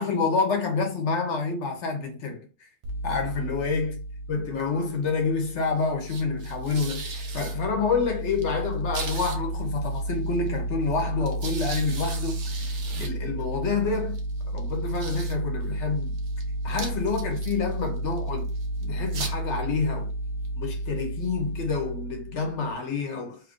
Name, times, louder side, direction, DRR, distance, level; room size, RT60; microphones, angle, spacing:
voice 1, 0.0-2.7 3.0-4.0 4.3-14.2 14.5-16.2 16.6-18.5 18.8-20.1 20.6-23.4, left 4 dB, 85° left, 1.1 m, -28 dB
sound 1, 2.8-22.7, right 1 dB, 80° right, 1.0 m, -32 dB
3.1 x 2.4 x 3.5 m
omnidirectional pair, 1.2 m